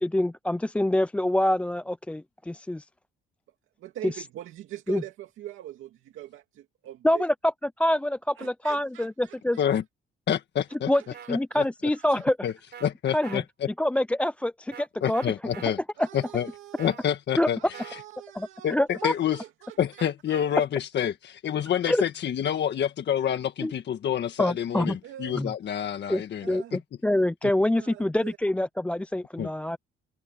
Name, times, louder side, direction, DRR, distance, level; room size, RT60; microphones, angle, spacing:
voice 1, 0.0-2.9 4.0-4.1 4.9-5.0 7.0-7.5 7.8-9.6 10.9-11.0 11.3-12.4 13.1-13.4 13.8-15.2 16.0-16.1 17.4-17.5 18.3-19.1 21.9-22.0 23.6-23.7 24.4-25.0 25.3-25.5 26.1-29.8, left 1 dB, 5° left, 0.3 m, -26 dB
voice 2, 3.8-7.3 8.4-9.7 10.9-12.2 16.0-16.9 17.6-20.0 25.0-25.4 26.4-26.7 27.7-28.4, right 13 dB, 85° right, 2.4 m, -43 dB
voice 3, 10.3-10.9 11.3-11.6 12.4-12.5 12.8-13.7 15.0-15.8 16.1-16.5 16.8-17.6 17.9-18.0 18.6-19.4 19.8-26.8 29.4-29.5, left 9 dB, 60° left, 1.6 m, -28 dB
sound 1, 11.1-11.3 12.7-12.9 13.2-13.4 14.7-14.9 15.1-15.7 16.8-17.1 17.7-18.0 20.0-20.5, right 8 dB, 60° right, 4.9 m, -43 dB
cardioid pair, 90°, 20 cm